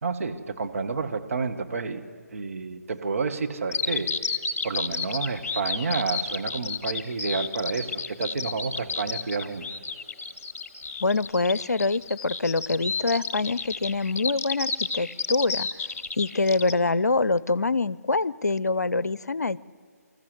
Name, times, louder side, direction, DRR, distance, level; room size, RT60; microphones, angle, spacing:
voice 1, 0.0-2.0 2.3-4.1 4.6-9.9, right 4 dB, 55° right, 6 dB, 1.6 m, -30 dB
Bird vocalization bird call bird song, 3.7-16.7, left 4 dB, 50° left, 1.2 m, -31 dB
voice 2, 11.0-15.8 16.2-19.6, left 3 dB, 75° left, 20 dB, 0.6 m, -25 dB
25.5 x 14.5 x 8.1 m, 2.2 s
figure-of-eight pair, 140°, 9 cm